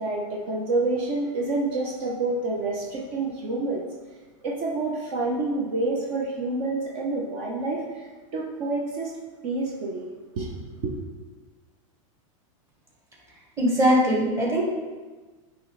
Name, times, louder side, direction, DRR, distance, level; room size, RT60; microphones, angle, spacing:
voice 1, 0.0-3.9 4.4-9.1 9.4-10.1 10.4-10.9, right 2 dB, 50° right, -3 dB, 0.9 m, -28 dB
voice 2, 13.6-14.6, equal, 15° right, -3 dB, 1.4 m, -21 dB
9.4 x 3.1 x 3.2 m, 1.3 s
supercardioid pair, 145°, 17 cm